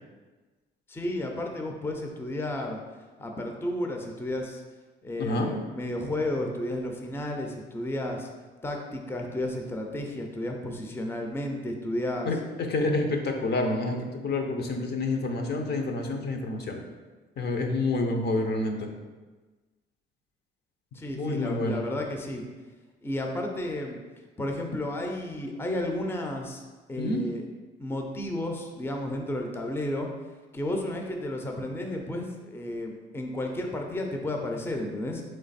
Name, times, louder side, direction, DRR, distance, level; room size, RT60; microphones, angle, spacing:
voice 1, 0.9-2.8 3.2-4.6 5.0-8.3 8.6-12.3 12.8-12.9 20.9-22.4 23.0-24.0 24.4-26.6 26.9-27.4 27.8-30.1 30.5-35.2, left 1 dB, 10° left, 2 dB, 0.5 m, -32 dB
voice 2, 5.2-5.5 12.2-16.8 17.4-18.9 21.1-21.8 27.0-27.2, left 2 dB, 55° left, 3 dB, 0.7 m, -28 dB
3.7 x 3.2 x 4.0 m, 1.3 s
cardioid pair, 90°, 20 cm